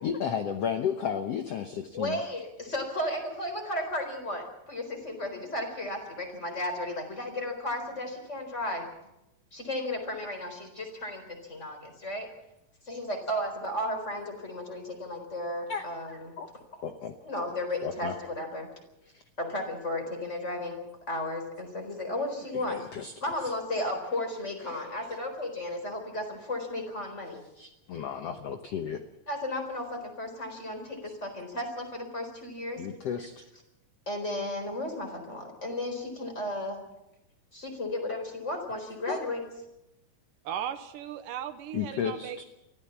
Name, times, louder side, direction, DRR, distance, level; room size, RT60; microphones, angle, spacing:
voice 1, 0.0-2.2 15.7-15.9 16.4-16.5 16.8-17.1 17.8-18.2 19.1-19.2 22.7-23.4 24.7-24.8 27.6-29.1 32.8-33.4 39.1-39.2 41.7-42.4, left 8 dB, 65° left, 6 dB, 1.7 m, -33 dB
voice 2, 1.9-8.8 9.5-12.3 12.8-16.3 16.7-16.8 17.2-18.7 19.4-22.8 23.2-27.4 29.3-32.8 34.1-36.8 37.5-39.4, left 1 dB, 20° left, 4 dB, 4.2 m, -34 dB
voice 3, 40.4-42.5, right 9 dB, 75° right, 10 dB, 2.5 m, -37 dB
24.0 x 15.0 x 7.3 m, 0.90 s
omnidirectional pair, 4.0 m